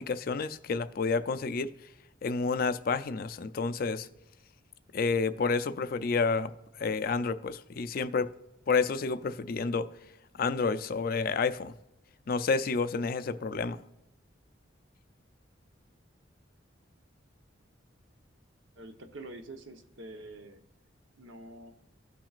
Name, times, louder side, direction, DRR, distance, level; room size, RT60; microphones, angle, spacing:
voice 1, 0.0-1.7 2.2-4.1 4.9-6.5 6.8-8.3 8.7-9.9 10.3-11.7 12.3-13.8, left 4 dB, 50° left, 0.4 m, -29 dB
voice 2, 18.8-20.6 21.2-21.7, right 2 dB, 75° right, 0.9 m, -46 dB
15.5 x 5.9 x 2.4 m
head